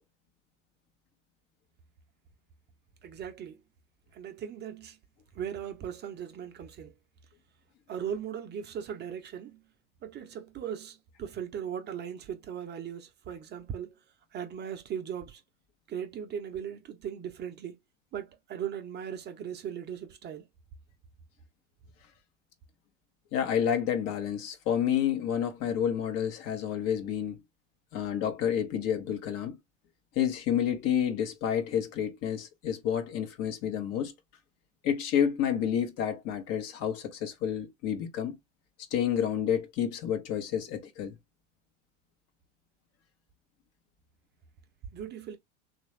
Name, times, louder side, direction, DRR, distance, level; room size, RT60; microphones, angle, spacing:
voice 1, 3.0-3.6 4.1-5.0 5.4-6.9 7.9-9.6 10.0-13.9 14.3-15.4 15.9-17.7 18.1-20.4 44.9-45.4, right 8 dB, 30° right, 0.7 m, -38 dB
voice 2, 23.3-27.4 27.9-29.6 30.1-34.1 34.8-38.4 38.9-41.2, left 9 dB, 45° left, 1.0 m, -29 dB
3.1 x 2.5 x 3.2 m
hypercardioid pair, 90°, 36 cm